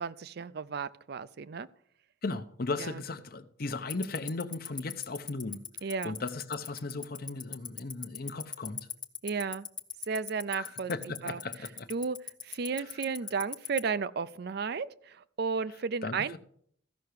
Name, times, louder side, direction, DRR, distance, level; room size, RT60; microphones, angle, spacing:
voice 1, 0.0-1.7 2.8-3.0 5.8-6.2 9.2-9.7 10.1-10.9 11.2-11.4 11.9-12.2 12.4-16.4, right 5 dB, 55° right, 0.4 m, -33 dB
voice 2, 2.2-5.6 6.0-8.9 10.5-11.9 12.8-12.9 16.0-16.4, left 3 dB, 55° left, 0.8 m, -36 dB
Tick-tock, 3.9-13.8, left 8 dB, 25° left, 0.7 m, -36 dB
14.5 x 5.8 x 6.5 m
head